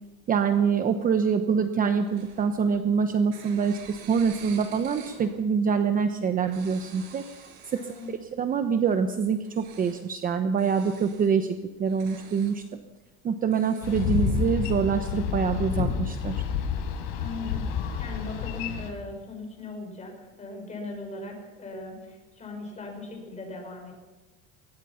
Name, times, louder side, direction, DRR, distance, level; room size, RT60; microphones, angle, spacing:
voice 1, 0.3-7.2 7.7-7.8 8.4-12.6 13.2-16.4, right 6 dB, 25° right, 8 dB, 0.9 m, -25 dB
sound 1, 2.0-2.9 3.3-5.4 6.3-8.3 9.4-10.0 10.6-11.3 11.8-12.6 13.5-15.0, right 7 dB, 60° right, 6.8 m, -48 dB
voice 2, 7.8-8.1 17.2-23.9, left 3 dB, 20° left, 3 dB, 5.4 m, -39 dB
Boat Water vehicle, 13.8-18.9, left 7 dB, 85° left, 4.7 m, -29 dB
23.5 x 19.5 x 5.7 m, 1.2 s
cardioid pair, 165°, 35 cm